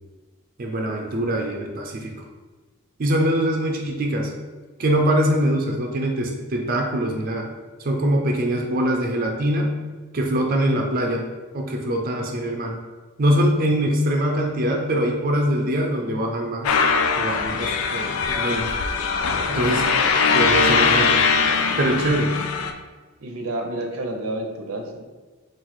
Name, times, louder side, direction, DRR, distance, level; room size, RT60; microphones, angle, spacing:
voice 1, 0.6-2.2 3.0-4.3 4.8-7.5 7.8-9.7 10.1-11.3 11.5-12.7 13.2-16.7 17.2-18.7 19.5-19.9 20.3-21.2 21.8-22.4, right 1 dB, 40° right, 1 dB, 0.4 m, -23 dB
sound 1, 16.6-22.7, left 5 dB, 75° left, 0.4 m, -21 dB
voice 2, 23.2-25.0, right 1 dB, 85° right, 3 dB, 0.6 m, -30 dB
3.9 x 2.4 x 4.5 m, 1.3 s
head